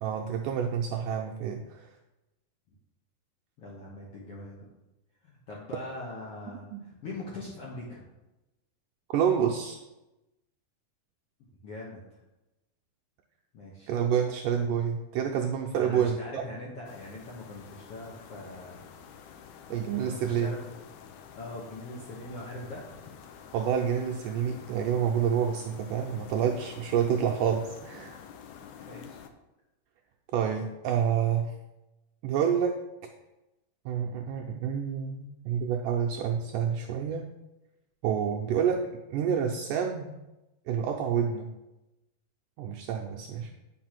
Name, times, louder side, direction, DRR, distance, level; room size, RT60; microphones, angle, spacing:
voice 1, 0.0-1.9 6.7-6.8 9.1-9.8 13.9-16.4 19.7-20.5 23.5-28.2 30.3-31.5 32.2-32.8 33.9-37.2 38.0-40.2 40.7-41.5 42.6-43.5, right 8 dB, 85° right, 1 dB, 1.9 m, -28 dB
voice 2, 3.6-4.7 5.2-8.0 11.6-12.2 13.5-13.9 15.8-18.8 19.1-20.7 21.3-23.2 28.8-29.2 43.3-43.5, left 2 dB, 65° left, -3 dB, 1.5 m, -42 dB
sound 1, 16.9-29.3, left 7 dB, 85° left, 1.8 m, -49 dB
9.3 x 5.1 x 5.9 m, 0.97 s
omnidirectional pair, 4.4 m